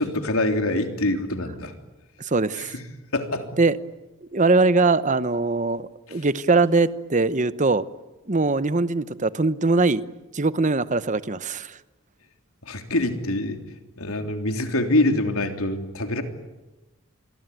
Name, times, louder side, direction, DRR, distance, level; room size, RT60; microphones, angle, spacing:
voice 1, 0.0-1.7 2.5-2.8 3.1-3.5 6.1-6.2 12.6-13.6 14.0-16.2, left 2 dB, 80° left, 5 dB, 3.4 m, -25 dB
voice 2, 2.2-2.7 3.6-3.8 4.3-7.8 8.3-10.0 10.3-11.8, right 3 dB, 35° right, 15 dB, 0.9 m, -21 dB
26.5 x 22.0 x 9.4 m, 1.1 s
head